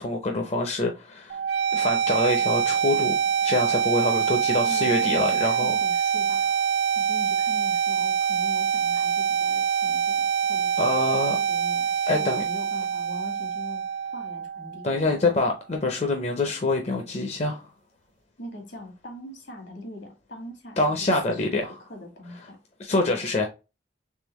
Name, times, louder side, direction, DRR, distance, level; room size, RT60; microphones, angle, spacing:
voice 1, 0.0-1.4 1.7-3.1 3.4-5.8 10.8-11.4 12.1-12.4 14.8-17.7 20.8-21.7 22.8-23.5, left 2 dB, 35° left, 0.5 m, -25 dB
sound 1, 1.3-15.3, right 7 dB, 65° right, 0.4 m, -25 dB
voice 2, 4.7-6.5 6.9-13.8 14.1-15.2 18.4-20.8 21.3-21.5 21.8-22.6 23.0-23.2, left 1 dB, 75° left, 1.5 m, -41 dB
3.7 x 3.3 x 2.9 m
head